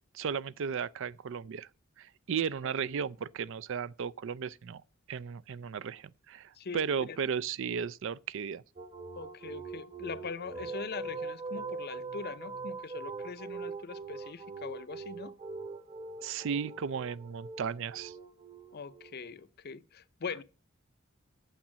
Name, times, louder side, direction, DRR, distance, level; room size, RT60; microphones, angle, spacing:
voice 1, 0.1-1.7 2.0-4.8 5.1-8.6 16.2-18.1, right 7 dB, 65° right, 0.4 m, -35 dB
sound 1, 8.8-19.4, right 4 dB, 30° right, 1.1 m, -42 dB
voice 2, 9.2-15.3 18.7-20.4, left 5 dB, 50° left, 0.6 m, -42 dB
8.9 x 7.2 x 7.3 m
head